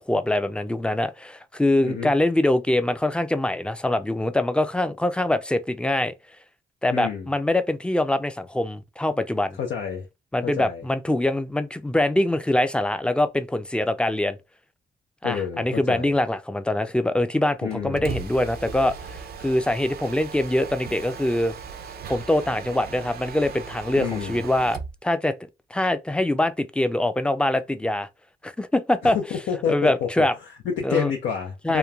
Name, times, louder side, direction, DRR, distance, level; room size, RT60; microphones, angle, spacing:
voice 1, 0.0-6.1 6.8-9.6 10.3-14.4 15.2-21.5 22.1-25.3 25.7-28.1 28.4-29.2 29.7-30.3 30.8-31.1 31.6-31.8, left 1 dB, 5° left, 0.4 m, -24 dB
voice 2, 6.9-7.3 9.5-10.1 10.4-10.8 15.2-16.1 17.6-18.1 23.9-24.4 29.0-30.1 30.4-31.8, left 7 dB, 80° left, 0.5 m, -29 dB
Mechanisms, 17.7-25.0, right 6 dB, 55° right, 0.5 m, -38 dB
3.0 x 2.1 x 2.3 m
supercardioid pair, 60°, 19 cm